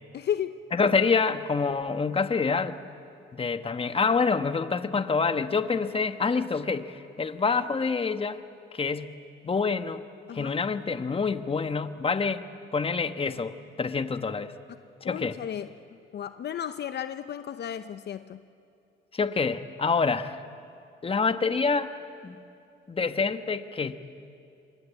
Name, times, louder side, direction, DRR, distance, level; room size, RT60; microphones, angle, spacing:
voice 1, 0.1-0.6 10.3-10.6 15.0-15.7 16.1-18.4, left 9 dB, 60° left, 11 dB, 0.8 m, -33 dB
voice 2, 0.7-2.8 3.3-8.4 8.7-9.1 9.4-10.0 10.3-12.4 12.7-14.5 15.0-15.4 19.1-20.4 21.0-21.9 22.2-22.4 22.9-24.0, left 4 dB, 30° left, 10 dB, 1.3 m, -27 dB
28.0 x 24.0 x 8.4 m, 2.5 s
cardioid pair, 90°, 20 cm